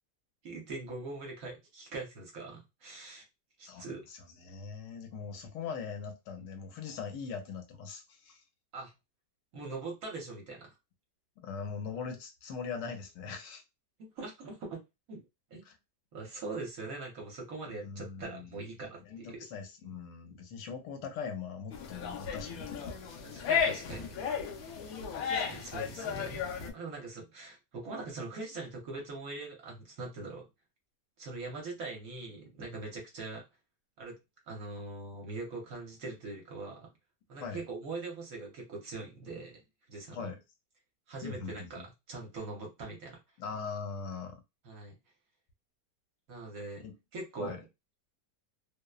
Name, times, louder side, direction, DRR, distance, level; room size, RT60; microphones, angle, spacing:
voice 1, 0.4-3.2 3.6-4.0 8.7-8.9 9.5-10.8 14.0-14.8 15.1-15.2 15.5-15.6 16.1-19.4 23.2-24.1 25.3-26.4 26.7-30.4 31.2-33.4 34.0-34.2 34.5-36.9 37.3-39.6 39.9-40.3 41.1-43.2 44.6-44.9 46.3-46.9 47.1-47.6, right 3 dB, 60° right, 1.1 m, -42 dB
voice 2, 4.4-8.4 11.4-13.6 15.6-15.7 17.7-18.6 19.1-23.3 37.4-37.6 40.1-40.4 41.2-41.8 43.4-44.4 46.8-46.9 47.4-47.6, left 5 dB, 85° left, 1.3 m, -41 dB
sound 1, 21.7-26.7, left 7 dB, 65° left, 0.9 m, -34 dB
2.9 x 2.0 x 2.2 m
omnidirectional pair, 1.9 m